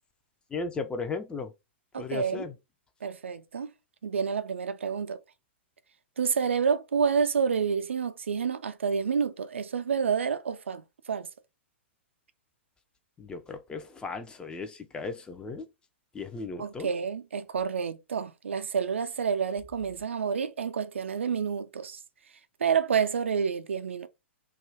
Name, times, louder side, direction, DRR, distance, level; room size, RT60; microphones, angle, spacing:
voice 1, 0.5-1.5 2.0-2.5 13.2-15.7 16.1-16.9, left 4 dB, 15° left, 0.4 m, -36 dB
voice 2, 1.9-2.5 3.0-3.7 4.0-5.2 6.2-11.3 16.6-22.0 22.6-24.1, right 6 dB, 75° right, 0.3 m, -29 dB
2.3 x 2.1 x 3.2 m
figure-of-eight pair, 105°, 7 cm